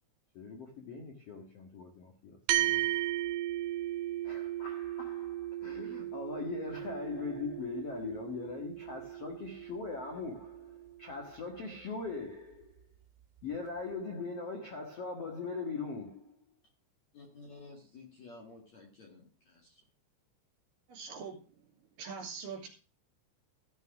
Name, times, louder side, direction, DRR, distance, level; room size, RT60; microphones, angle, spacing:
voice 1, 0.3-2.9 4.2-12.9 13.4-16.6, left 4 dB, 80° left, 1.3 m, -41 dB
sound 1, 2.5-11.2, right 14 dB, 70° right, 2.7 m, -36 dB
voice 2, 17.1-19.8, left 3 dB, 50° left, 2.5 m, -53 dB
voice 3, 20.9-21.4 22.0-22.7, right 5 dB, 50° right, 4.1 m, -42 dB
14.0 x 6.2 x 5.8 m
omnidirectional pair, 5.6 m